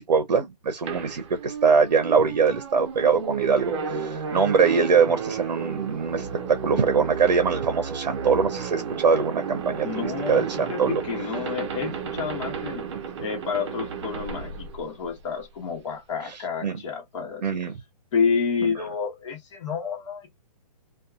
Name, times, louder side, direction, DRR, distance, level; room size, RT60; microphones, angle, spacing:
voice 1, 0.0-9.9 10.3-11.0 11.8-11.9 12.9-13.0 16.2-16.8 17.4-17.7 18.6-18.7, right 5 dB, 85° right, 0.6 m, -23 dB
sound 1, 0.9-15.4, right 6 dB, 45° right, 0.5 m, -32 dB
voice 2, 9.8-12.8 13.2-17.4 18.1-20.3, left 6 dB, 50° left, 1.2 m, -29 dB
2.7 x 2.3 x 2.3 m
hypercardioid pair, 145°, 21 cm